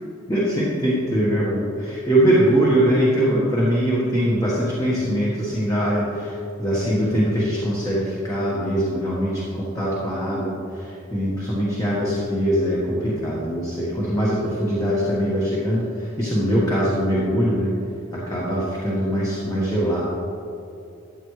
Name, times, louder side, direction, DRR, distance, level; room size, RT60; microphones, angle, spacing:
voice 1, 0.3-17.7 18.1-20.0, equal, 20° left, -7 dB, 1.4 m, -22 dB
13.0 x 7.8 x 3.2 m, 2.8 s
head